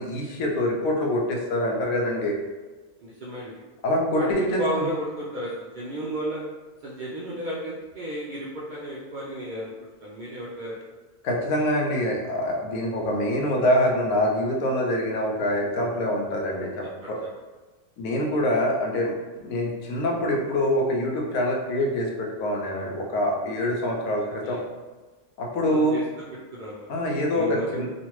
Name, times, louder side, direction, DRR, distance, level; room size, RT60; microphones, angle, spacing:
voice 1, 0.0-2.4 3.8-4.9 11.2-17.2 18.0-19.1 19.4-24.6 25.4-26.0 26.9-27.9, left 1 dB, 90° left, -1 dB, 1.0 m, -25 dB
voice 2, 3.0-3.6 4.2-6.4 6.8-9.7 10.0-10.8 17.0-17.1 24.2-24.6 25.6-26.9 27.3-27.8, equal, 85° right, -6 dB, 0.4 m, -33 dB
3.0 x 2.4 x 3.0 m, 1.3 s
omnidirectional pair, 1.4 m